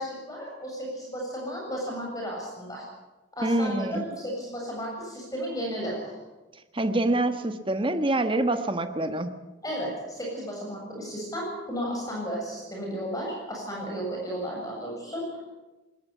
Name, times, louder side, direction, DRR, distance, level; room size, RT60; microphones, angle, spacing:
voice 1, 0.0-2.8 3.3-6.2 9.6-15.4, equal, 20° left, -2 dB, 7.3 m, -34 dB
voice 2, 3.4-4.0 6.7-9.3, right 1 dB, 30° right, 8 dB, 1.4 m, -26 dB
20.5 x 20.0 x 8.4 m, 1.1 s
head